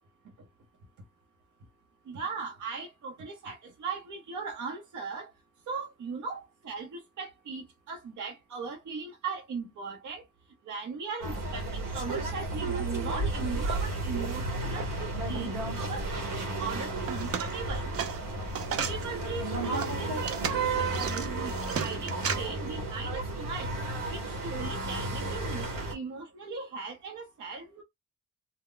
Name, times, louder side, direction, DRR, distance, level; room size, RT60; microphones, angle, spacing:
voice 1, 2.1-5.3 5.7-10.2 10.6-16.1 16.6-17.9 18.9-23.7 24.1-27.8, right 5 dB, 65° right, 0.9 m, -38 dB
sound 1, 11.2-25.9, right 2 dB, 85° right, 1.1 m, -33 dB
sound 2, 17.0-19.0 19.5-22.4, right 7 dB, 45° right, 0.5 m, -34 dB
2.2 x 2.1 x 3.7 m
cardioid pair, 90°, 32 cm